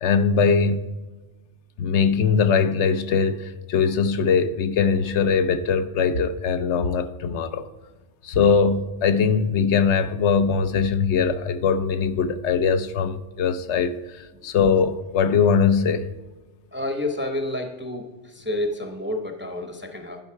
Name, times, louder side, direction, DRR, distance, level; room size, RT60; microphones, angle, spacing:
voice 1, 0.0-0.8 1.8-7.7 8.2-16.1, left 6 dB, 70° left, 0.9 m, -21 dB
voice 2, 16.7-20.2, left 1 dB, 10° right, 0.7 m, -29 dB
11.5 x 5.4 x 4.7 m
omnidirectional pair, 1.3 m